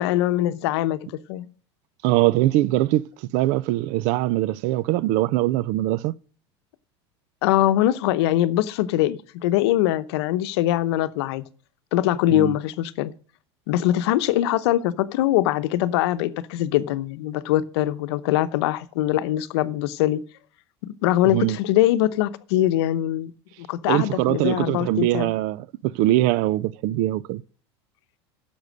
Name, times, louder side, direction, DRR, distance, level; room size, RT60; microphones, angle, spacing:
voice 1, 0.0-1.5 7.4-11.4 11.9-13.1 13.7-20.2 20.8-23.3 23.7-25.3, left 13 dB, 75° left, 0.8 m, -22 dB
voice 2, 2.0-6.2 12.3-12.5 21.2-21.6 23.9-27.4, right 16 dB, 60° right, 0.5 m, -22 dB
10.5 x 7.0 x 6.3 m
supercardioid pair, 100°, 14 cm